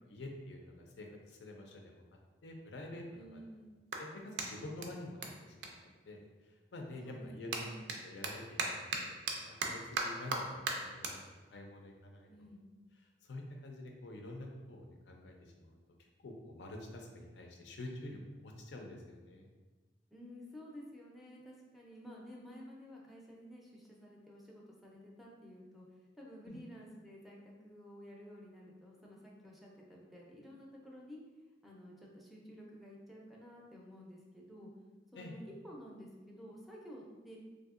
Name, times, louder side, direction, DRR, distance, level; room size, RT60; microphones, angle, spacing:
voice 1, 0.1-2.0 2.4-3.4 4.0-8.8 9.4-12.3 13.2-15.8 16.2-19.5 26.5-26.6 35.2-35.4, left 1 dB, 85° left, 1 dB, 0.5 m, -48 dB
voice 2, 3.1-3.7 7.0-7.8 12.3-12.6 20.1-25.9 26.2-31.2 31.6-34.7 35.1-37.4, equal, ahead, -3 dB, 0.4 m, -52 dB
Clapping, 3.1-6.6 6.9-13.5, right 3 dB, 70° right, 0.4 m, -41 dB
3.4 x 2.6 x 2.4 m, 1.3 s
head